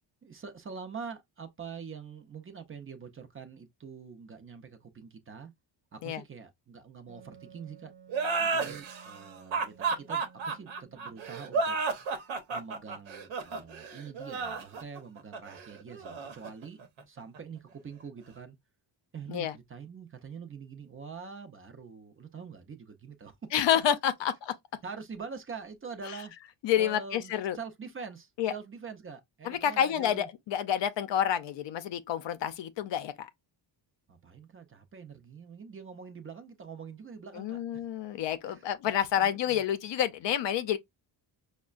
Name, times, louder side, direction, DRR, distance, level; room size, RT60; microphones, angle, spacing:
voice 1, 0.2-5.5 5.9-7.9 8.4-11.8 12.5-16.8 17.1-18.6 19.1-23.5 24.8-26.3 26.8-30.3 34.1-37.6 38.4-38.7 39.2-39.6, right 5 dB, 30° right, 0.5 m, -45 dB
Wind instrument woodwind instrument, 7.1-12.5, right 6 dB, 55° right, 1.0 m, -56 dB
sound 1, 8.1-17.4, right 4 dB, 80° right, 0.9 m, -33 dB
voice 2, 23.5-24.5 26.6-27.6 28.4-28.5 29.4-33.3 37.3-40.8, left 10 dB, 70° left, 0.6 m, -29 dB
5.2 x 2.1 x 2.4 m
wide cardioid pair, 145°, 46 cm